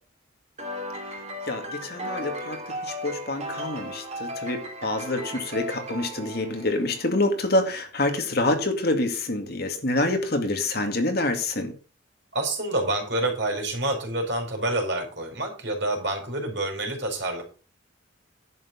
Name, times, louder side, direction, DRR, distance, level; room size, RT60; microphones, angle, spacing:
sound 1, 0.6-7.2, equal, 35° right, 3.2 m, -36 dB
voice 1, 1.5-11.7, left 2 dB, 50° left, 2.2 m, -27 dB
voice 2, 12.3-17.4, right 1 dB, 60° right, 4.6 m, -27 dB
11.0 x 8.1 x 5.1 m
head